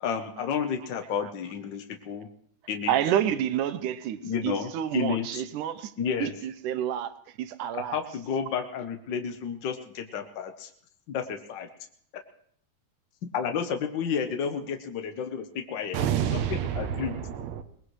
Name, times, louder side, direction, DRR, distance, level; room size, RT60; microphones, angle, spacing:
voice 1, 0.0-2.3 2.7-2.9 4.2-5.2 6.0-6.3 7.8-10.7 11.1-11.7 13.2-16.0 16.3-16.4 16.8-17.1, left 7 dB, 75° left, 1.0 m, -31 dB
voice 2, 2.9-5.9 6.2-8.2, right 10 dB, 85° right, 2.3 m, -29 dB
voice 3, 15.9-17.6, right 9 dB, 70° right, 2.0 m, -29 dB
22.5 x 19.5 x 3.2 m
omnidirectional pair, 3.5 m